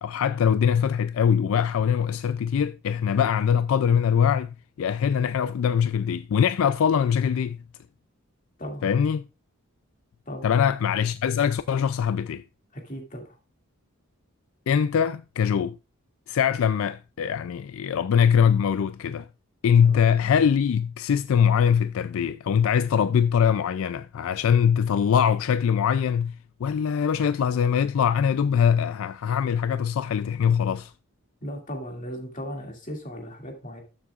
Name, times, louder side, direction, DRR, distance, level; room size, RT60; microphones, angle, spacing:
voice 1, 0.0-7.6 8.8-9.3 10.4-12.4 14.7-15.8 16.3-19.3 19.6-30.9, left 7 dB, 75° left, 0.3 m, -22 dB
voice 2, 12.7-13.3 19.8-20.0 31.4-33.8, equal, 40° left, 2.4 m, -36 dB
12.5 x 7.4 x 2.4 m
head